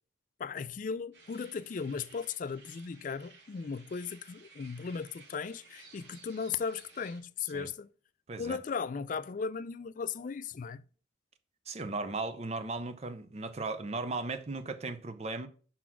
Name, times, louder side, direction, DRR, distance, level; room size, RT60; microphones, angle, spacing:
voice 1, 0.4-7.9 8.4-10.8, left 5 dB, 45° left, 0.3 m, -37 dB
sound 1, 1.1-7.2, right 4 dB, 70° right, 2.4 m, -57 dB
voice 2, 8.3-8.6 11.7-15.5, right 3 dB, 35° right, 0.6 m, -36 dB
5.8 x 4.1 x 5.9 m
head